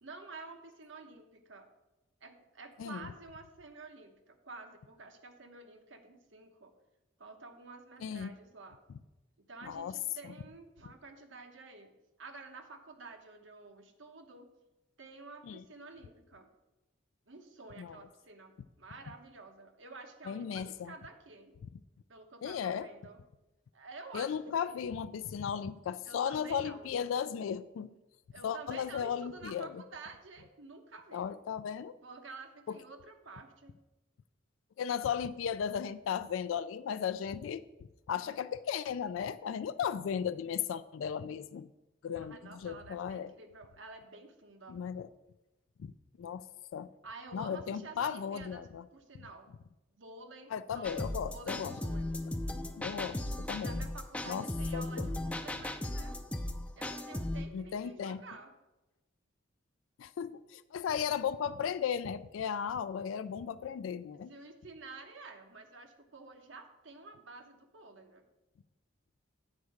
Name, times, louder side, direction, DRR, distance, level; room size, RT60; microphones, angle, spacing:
voice 1, 0.0-1.7 2.2-6.7 7.2-8.8 9.5-11.9 12.2-14.5 15.0-16.5 17.3-18.5 18.8-21.5 22.1-23.2 23.7-24.4 24.6-24.8 26.0-26.9 28.3-31.3 32.0-33.7 42.1-44.8 47.0-48.7 48.9-49.5 50.0-52.2 53.6-56.1 56.8-58.5 64.3-68.2, right 3 dB, 75° right, 6 dB, 1.0 m, -50 dB
voice 2, 2.8-3.1 8.0-8.3 9.6-10.0 15.4-15.6 17.8-18.0 20.3-20.9 22.4-22.9 24.1-27.9 28.4-29.8 31.1-32.0 32.7-32.8 34.8-37.6 38.1-41.7 42.0-43.3 44.7-45.1 45.8-45.9 46.2-46.4 46.7-46.9 47.3-48.8 50.5-51.8 52.8-53.8 54.3-54.5 54.7-55.1 57.5-58.2 60.0-64.3, left 7 dB, 85° left, 13 dB, 0.3 m, -36 dB
sound 1, 50.8-57.4, left 1 dB, 5° left, 0.4 m, -37 dB
8.4 x 4.6 x 6.4 m, 1.0 s
head